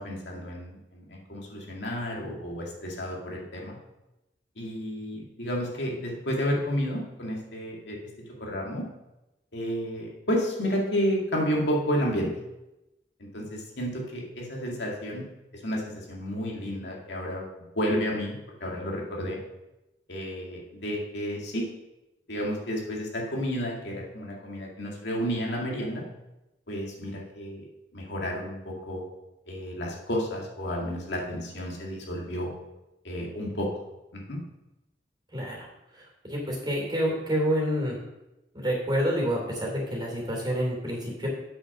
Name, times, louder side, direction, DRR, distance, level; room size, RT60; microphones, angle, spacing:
voice 1, 0.0-3.8 4.6-8.0 8.4-8.9 9.5-12.3 13.2-17.5 17.7-19.4 20.1-21.7 22.3-26.1 26.7-27.6 27.9-29.0 29.5-32.5 33.0-33.7 34.1-34.4, equal, 75° left, -2 dB, 2.3 m, -31 dB
voice 2, 35.3-35.7 36.3-38.0 38.5-41.3, equal, 25° right, -1 dB, 3.2 m, -28 dB
8.3 x 6.4 x 6.0 m, 0.94 s
head